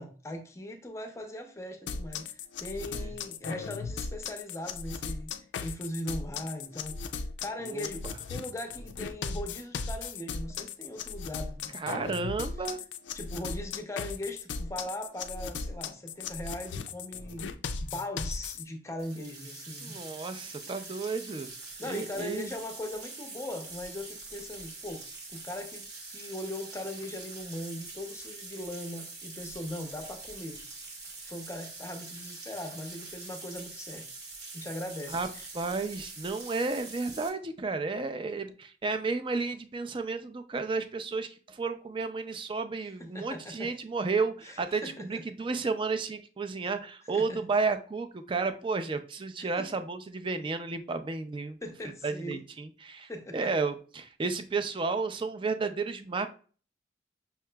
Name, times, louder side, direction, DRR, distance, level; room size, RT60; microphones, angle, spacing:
voice 1, 0.0-5.3 5.6-7.0 7.4-12.2 13.1-17.5 17.8-20.0 21.8-30.6 31.2-34.1 34.5-35.5 43.0-43.7 44.4-45.2 47.1-47.4 49.4-49.7 51.6-52.4 53.1-53.5, left 1 dB, 15° left, 0.6 m, -40 dB
sound 1, 1.9-18.6, left 5 dB, 90° left, 0.4 m, -37 dB
voice 2, 7.6-8.2 11.7-12.8 19.8-21.5 21.8-22.5 35.1-35.3 35.5-51.6 52.0-56.3, right 4 dB, 30° right, 0.4 m, -32 dB
sound 2, 19.0-37.3, right 3 dB, 65° right, 1.0 m, -44 dB
5.6 x 2.9 x 2.2 m
head